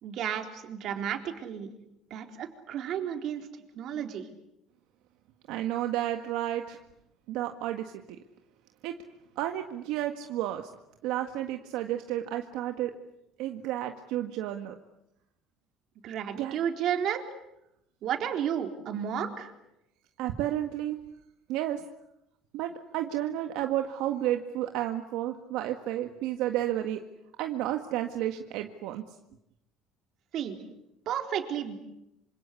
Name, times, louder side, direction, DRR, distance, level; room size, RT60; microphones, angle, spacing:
voice 1, 0.0-1.7 2.1-3.5 3.7-4.3 16.0-17.2 18.0-19.5 30.3-30.6 31.1-31.7, right 9 dB, 55° right, 5 dB, 4.0 m, -32 dB
voice 2, 5.5-6.8 7.3-7.9 8.8-9.0 9.4-10.7 11.0-12.9 13.4-14.8 16.4-16.6 20.2-21.0 21.5-21.8 22.5-27.0 27.4-29.0, right 12 dB, 80° right, 5 dB, 1.7 m, -31 dB
27.0 x 26.0 x 8.4 m, 0.83 s
cardioid pair, 135°, 0 cm